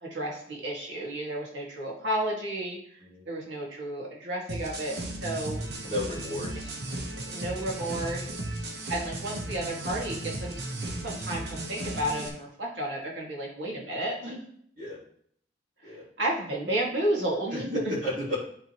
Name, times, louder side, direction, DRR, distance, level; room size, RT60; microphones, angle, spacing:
voice 1, 0.0-5.0 5.2-5.6 7.3-8.3 8.9-10.6 11.0-14.4 15.8-17.9, right 1 dB, 85° right, -3 dB, 2.1 m, -32 dB
sound 1, 4.5-12.3, right 2 dB, 65° right, 1.1 m, -35 dB
voice 2, 5.8-6.7 7.0-7.4 14.8-15.0 15.8-16.0 17.5-17.6 18.0-18.4, left 1 dB, 50° right, -7 dB, 2.3 m, -34 dB
10.5 x 3.9 x 3.0 m, 0.64 s
head